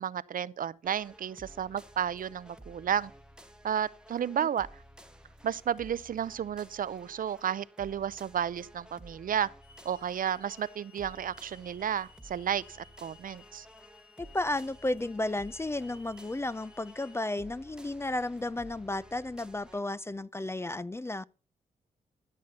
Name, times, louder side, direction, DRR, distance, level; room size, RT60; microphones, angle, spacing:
voice 1, 0.0-3.1 3.6-4.7 5.4-9.5 9.8-13.7, right 9 dB, 60° right, 0.5 m, -32 dB
sound 1, 0.8-19.8, right 1 dB, 5° right, 1.2 m, -54 dB
Hiss / Alarm, 9.6-17.3, left 5 dB, 40° left, 4.5 m, -58 dB
voice 2, 14.2-21.2, left 2 dB, 15° left, 0.4 m, -33 dB
13.0 x 6.6 x 5.3 m
cardioid pair, 65°, 16 cm